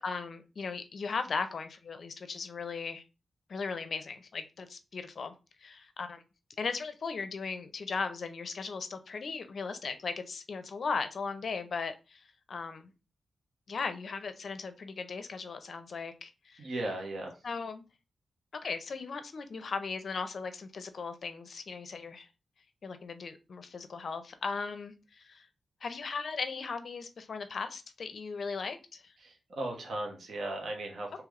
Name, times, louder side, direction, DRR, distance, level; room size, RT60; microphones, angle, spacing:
voice 1, 0.0-3.0 3.5-5.3 5.6-6.2 6.6-12.9 13.7-16.7 17.4-17.8 18.5-22.3 22.8-25.5 25.8-29.1, left 4 dB, 50° left, 9 dB, 0.5 m, -37 dB
voice 2, 16.6-17.3 29.2-31.2, right 1 dB, 55° right, 1 dB, 1.0 m, -37 dB
3.3 x 3.0 x 3.6 m, 0.30 s
wide cardioid pair, 150°, 0 cm